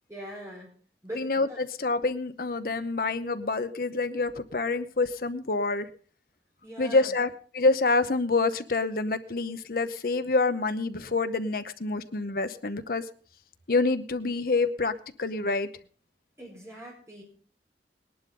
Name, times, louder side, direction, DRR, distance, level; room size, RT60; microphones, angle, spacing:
voice 1, 0.1-0.7 1.0-1.6 6.6-7.2 16.4-17.2, equal, 15° right, -3 dB, 4.9 m, -42 dB
voice 2, 1.1-5.9 6.8-13.0 13.7-15.7, left 3 dB, 55° left, 11 dB, 0.8 m, -27 dB
19.0 x 11.0 x 3.8 m, 0.42 s
head